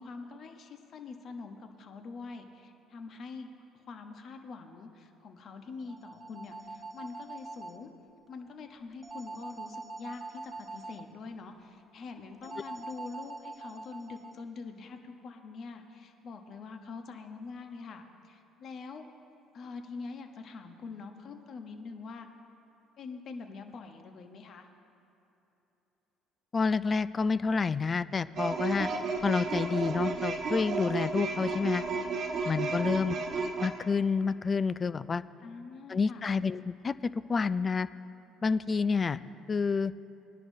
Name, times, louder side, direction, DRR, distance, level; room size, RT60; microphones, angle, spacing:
voice 1, 0.0-3.5 3.9-7.9 8.3-19.0 19.5-22.3 23.0-24.7 32.6-33.1 35.4-36.2, left 4 dB, 55° left, 5 dB, 1.0 m, -44 dB
sound 1, 5.8-7.8 9.0-11.0 12.4-14.4, right 3 dB, 25° right, 1.2 m, -44 dB
voice 2, 26.5-28.9 29.2-31.8 32.5-33.2 33.6-35.2 35.9-37.9 38.4-39.2 39.5-39.9, left 5 dB, 35° left, 16 dB, 0.3 m, -29 dB
sound 2, 28.4-33.7, right 4 dB, 50° right, 1.1 m, -32 dB
20.0 x 10.5 x 2.7 m, 3.0 s
hypercardioid pair, 55°, 0 cm